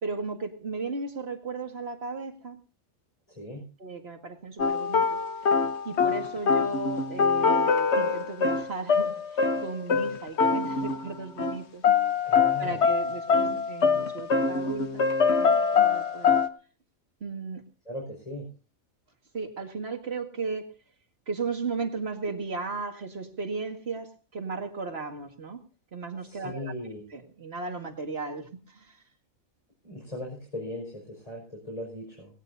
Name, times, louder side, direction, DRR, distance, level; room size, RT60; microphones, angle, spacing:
voice 1, 0.0-2.6 3.8-5.2 5.8-11.8 12.6-15.1 15.4-16.4 17.2-17.6 19.3-20.7 21.3-25.6 25.9-26.7 27.1-29.0, right 4 dB, 45° right, 4 dB, 2.1 m, -35 dB
sound 1, 4.6-11.1 11.4-11.6 11.8-16.5, left 5 dB, 55° left, 1.3 m, -24 dB
voice 2, 12.2-12.8 17.9-18.5 26.2-27.0 29.8-32.3, left 1 dB, 25° left, -2 dB, 5.6 m, -38 dB
19.5 x 17.5 x 2.7 m, 0.36 s
omnidirectional pair, 1.5 m